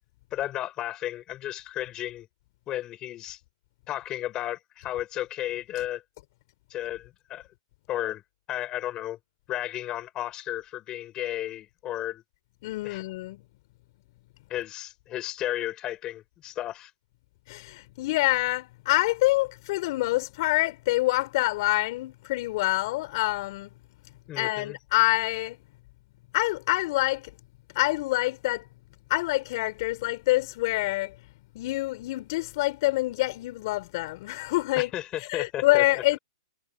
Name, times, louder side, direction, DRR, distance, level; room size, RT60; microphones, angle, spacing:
voice 1, 0.3-2.3 2.7-3.4 3.9-6.0 6.7-7.5 7.9-8.2 8.5-9.2 9.5-12.2 12.8-13.0 14.5-16.9 24.3-24.8 34.8-35.8, left 13 dB, 25° left, 5.9 m, -33 dB
voice 2, 12.6-13.4 17.5-23.7 24.4-25.6 26.3-27.3 27.8-28.6 29.1-31.2 31.6-34.9 35.2-36.2, left 19 dB, 45° left, 3.3 m, -26 dB
hypercardioid pair, 140°, 3 cm